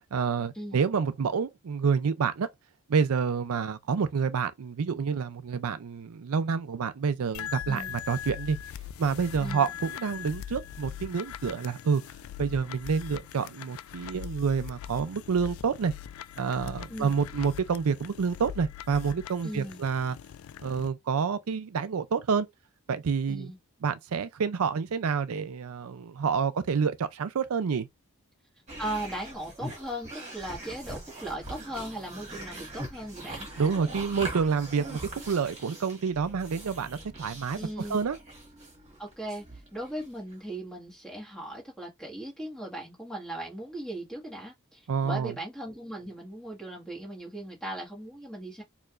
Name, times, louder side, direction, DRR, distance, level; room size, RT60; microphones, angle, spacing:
voice 1, 0.1-2.5 2.9-8.6 9.0-12.0 12.4-15.9 16.4-20.2 20.6-22.5 22.9-23.5 23.8-27.9 33.6-35.0 35.3-37.6 37.9-38.2 44.9-45.3, right 6 dB, 75° right, 0.5 m, -28 dB
sound 1, 7.3-20.9, left 10 dB, 65° left, 0.3 m, -41 dB
voice 2, 9.4-9.7 16.9-17.3 19.4-19.8 23.3-23.6 28.8-33.5 37.5-38.0 39.0-39.4 39.7-48.6, right 1 dB, 5° left, 1.5 m, -38 dB
sound 2, 28.7-40.4, right 1 dB, 30° right, 1.6 m, -42 dB
4.5 x 2.9 x 2.4 m
head